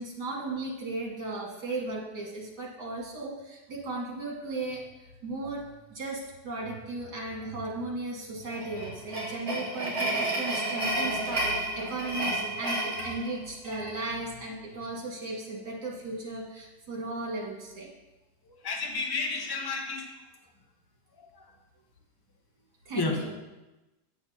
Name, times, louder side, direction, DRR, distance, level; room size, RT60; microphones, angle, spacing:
voice 1, 0.0-5.6 5.9-17.9 22.9-23.3, right 2 dB, 65° right, -2 dB, 2.6 m, -36 dB
sound 1, 8.5-14.0, right 1 dB, 35° right, 2.7 m, -31 dB
voice 2, 18.5-20.1 21.2-21.4 22.9-23.1, left 3 dB, 15° left, 1 dB, 0.9 m, -32 dB
8.9 x 8.8 x 4.3 m, 1.1 s
omnidirectional pair, 1.8 m